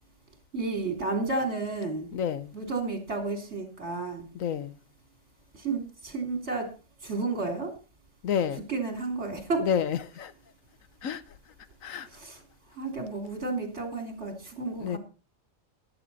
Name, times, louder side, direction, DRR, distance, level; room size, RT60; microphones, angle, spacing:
voice 1, 0.5-2.1 2.5-4.3 5.5-6.7 7.0-7.7 8.7-9.7 12.0-12.4 12.8-15.0, right 3 dB, 55° right, 3.5 m, -32 dB
voice 2, 2.1-2.5 4.3-4.7 8.2-8.7 9.6-10.3 11.0-11.2 11.8-12.1 14.8-15.0, left 8 dB, 85° left, 1.3 m, -29 dB
14.0 x 11.0 x 4.1 m
omnidirectional pair, 1.4 m